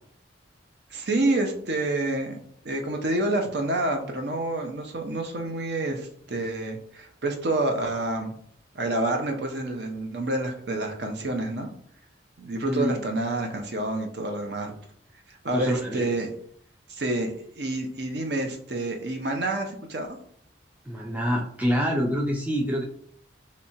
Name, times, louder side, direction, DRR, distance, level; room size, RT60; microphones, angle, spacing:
voice 1, 0.9-2.4 2.6-8.4 8.7-11.7 12.4-14.7 15.4-16.3 16.9-20.2, right 2 dB, 60° right, 3 dB, 0.6 m, -28 dB
voice 2, 15.5-16.1 20.9-22.8, equal, 10° right, -1 dB, 0.3 m, -26 dB
3.3 x 2.8 x 2.8 m, 0.63 s
head